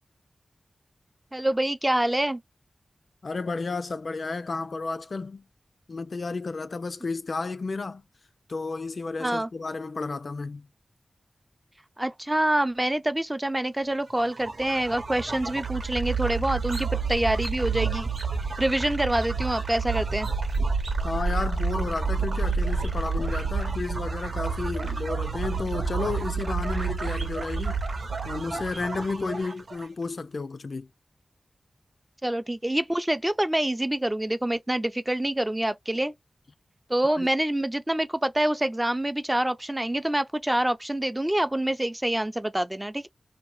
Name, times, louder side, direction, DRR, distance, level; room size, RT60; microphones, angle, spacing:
voice 1, 1.3-2.4 9.2-9.5 12.0-18.1 18.6-20.3 32.2-36.1 36.9-43.1, right 1 dB, 15° right, 0.4 m, -26 dB
voice 2, 3.2-5.5 5.9-8.0 8.5-10.7 21.0-27.8 28.2-30.9 37.0-37.3, left 3 dB, 60° left, 0.3 m, -32 dB
sound 1, 14.2-29.9, right 4 dB, 70° right, 0.9 m, -29 dB
sound 2, 16.6-21.9 22.3-23.7 24.0-29.9, right 3 dB, 90° right, 1.3 m, -42 dB
2.9 x 2.1 x 3.0 m
wide cardioid pair, 75°, 0 cm